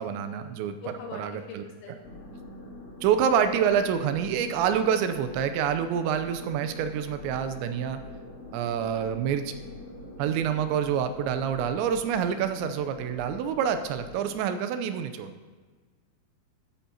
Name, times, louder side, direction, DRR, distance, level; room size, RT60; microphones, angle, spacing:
voice 1, 0.0-0.8 1.1-1.7 3.0-8.0 8.5-9.5 10.2-15.3, right 8 dB, 90° right, 9 dB, 2.9 m, -27 dB
voice 2, 0.8-2.0, left 3 dB, 75° left, 1 dB, 3.6 m, -42 dB
sound 1, 2.0-14.4, left 2 dB, 30° left, 1.3 m, -44 dB
13.0 x 9.1 x 2.8 m, 1.4 s
omnidirectional pair, 5.2 m